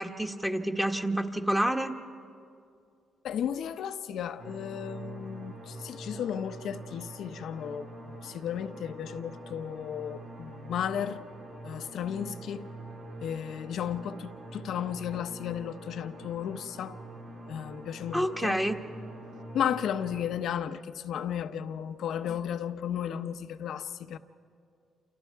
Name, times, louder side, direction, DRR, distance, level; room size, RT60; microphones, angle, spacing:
voice 1, 0.0-2.0 18.1-18.8, right 1 dB, 5° right, 1.5 m, -28 dB
voice 2, 3.2-11.2 11.6-12.7 13.2-17.0 17.5-18.6 19.5-24.2, left 9 dB, 70° left, 0.9 m, -34 dB
sound 1, 4.4-20.3, right 1 dB, 80° right, 5.6 m, -45 dB
28.5 x 28.5 x 4.7 m
cardioid pair, 90°, 0 cm